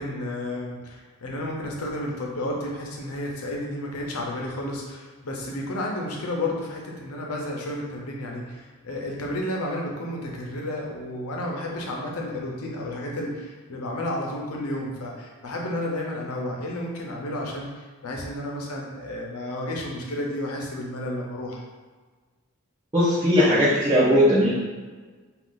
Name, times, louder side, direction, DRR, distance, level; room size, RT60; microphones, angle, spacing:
voice 1, 0.0-21.6, left 1 dB, 85° left, -1 dB, 0.6 m, -32 dB
voice 2, 22.9-24.5, equal, 20° right, -12 dB, 0.6 m, -18 dB
2.5 x 2.3 x 3.6 m, 1.4 s
head